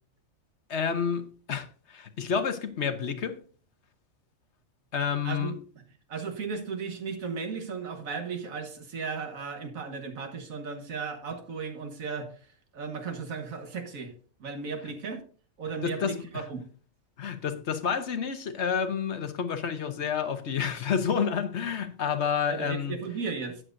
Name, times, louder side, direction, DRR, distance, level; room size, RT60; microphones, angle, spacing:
voice 1, 0.7-3.4 4.9-5.5 15.8-16.5 17.2-23.0, left 7 dB, 60° left, 1.2 m, -29 dB
voice 2, 6.1-12.3 12.7-14.1 14.4-15.2 15.6-16.7 22.5-23.6, right 5 dB, 80° right, 1.8 m, -35 dB
12.5 x 9.1 x 2.6 m
omnidirectional pair, 1.4 m